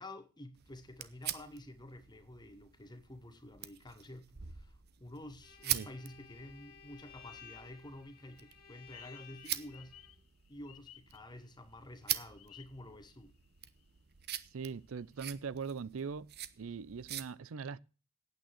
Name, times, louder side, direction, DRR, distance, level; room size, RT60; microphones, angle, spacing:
voice 1, 0.0-10.0 10.5-13.3, left 1 dB, 20° left, 1.4 m, -50 dB
sound 1, 0.6-17.3, right 12 dB, 50° right, 0.8 m, -44 dB
Bowed string instrument, 5.4-10.1, left 7 dB, 45° left, 2.0 m, -56 dB
sound 2, 8.9-11.7 12.4-13.4 13.8-13.9 14.3-15.3, left 13 dB, 80° left, 0.6 m, -58 dB
voice 2, 14.5-16.3 16.6-17.8, right 5 dB, 70° right, 0.5 m, -41 dB
8.9 x 8.9 x 7.5 m
head